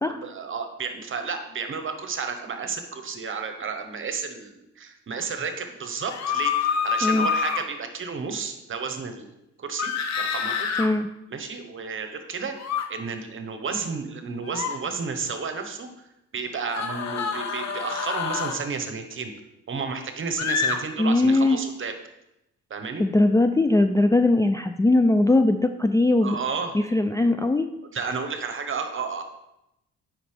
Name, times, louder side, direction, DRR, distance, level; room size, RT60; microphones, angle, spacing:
voice 1, 0.1-9.3 9.6-9.9 10.2-10.7 11.3-12.5 12.9-15.9 16.3-19.3 19.7-21.9 22.7-23.0 26.2-26.8 27.9-29.2, right 5 dB, 45° right, 6 dB, 1.1 m, -32 dB
sound 1, 6.1-7.6 9.8-10.9 12.6-12.8 14.4-14.8 16.7-18.6 20.4-20.8, left 6 dB, 60° left, 0.9 m, -27 dB
voice 2, 21.0-21.6 23.0-26.4 26.7-27.7, left 2 dB, 10° left, 7 dB, 0.3 m, -20 dB
8.9 x 5.3 x 3.3 m, 0.87 s
cardioid pair, 90°, 30 cm